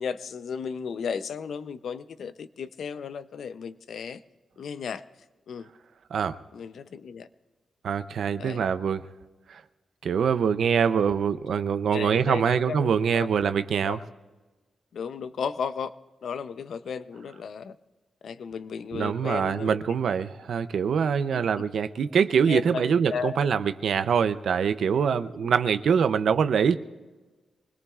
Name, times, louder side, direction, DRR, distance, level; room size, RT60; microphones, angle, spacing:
voice 1, 0.0-4.2 4.6-5.0 5.5-5.7 6.5-7.3 8.4-8.6 11.5-13.3 13.9-14.0 14.9-15.9 16.2-17.8 18.2-19.8 21.3-21.4 22.1-23.4 25.4-25.5, left 6 dB, 70° left, 12 dB, 0.6 m, -34 dB
voice 2, 7.8-9.0 9.5-9.6 10.0-14.0 18.9-26.8, right 7 dB, 70° right, 12 dB, 0.5 m, -24 dB
24.5 x 20.5 x 2.4 m, 1.2 s
wide cardioid pair, 155°, 0 cm